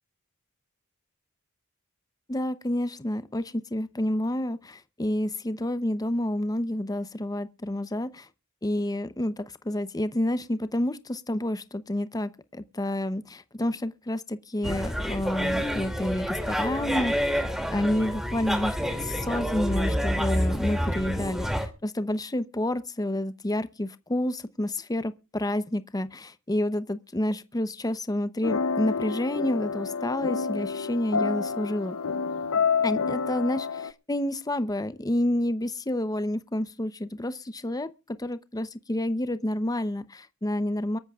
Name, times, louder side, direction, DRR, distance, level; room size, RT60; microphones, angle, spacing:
voice 1, 2.3-8.3 8.6-17.1 17.7-18.8 19.0-32.0 32.8-37.9 38.2-41.0, left 1 dB, 15° left, 0.7 m, -29 dB
sound 1, 14.6-21.7, equal, ahead, 2.4 m, -28 dB
sound 2, 28.4-33.9, left 5 dB, 70° left, 0.7 m, -28 dB
23.5 x 13.5 x 2.4 m
head